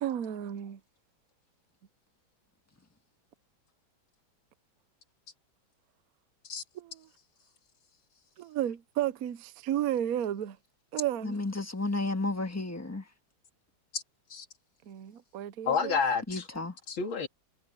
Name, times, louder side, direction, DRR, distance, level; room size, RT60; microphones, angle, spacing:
voice 1, 0.0-0.8 6.7-7.1 8.4-10.6 10.9-11.4 14.9-16.0, right 11 dB, 60° right, 1.0 m, -33 dB
voice 2, 11.2-13.0 16.3-16.7, left 2 dB, 10° left, 1.6 m, -32 dB
voice 3, 15.6-16.5 16.9-17.3, left 5 dB, 75° left, 3.2 m, -29 dB
omnidirectional pair, 2.2 m